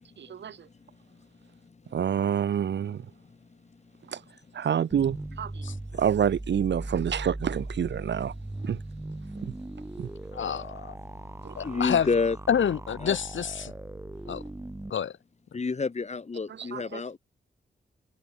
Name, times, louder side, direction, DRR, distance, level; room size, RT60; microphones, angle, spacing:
voice 1, 0.2-0.7 1.9-3.1 4.1-4.2 4.5-5.7 5.9-8.3 8.6-8.8 9.4-9.5 10.0-10.1 11.4-11.5 16.7-17.0, right 8 dB, 65° right, 0.7 m, -28 dB
sound 1, 4.9-14.9, right 2 dB, 15° right, 4.2 m, -39 dB
voice 2, 10.3-11.0 11.6-12.1 12.5-13.7 14.3-14.4 14.9-15.2, left 8 dB, 75° left, 2.2 m, -28 dB
voice 3, 11.6-12.4 13.0-13.2 15.5-17.2, left 4 dB, 35° left, 6.4 m, -28 dB
wide cardioid pair, 170°, 20 cm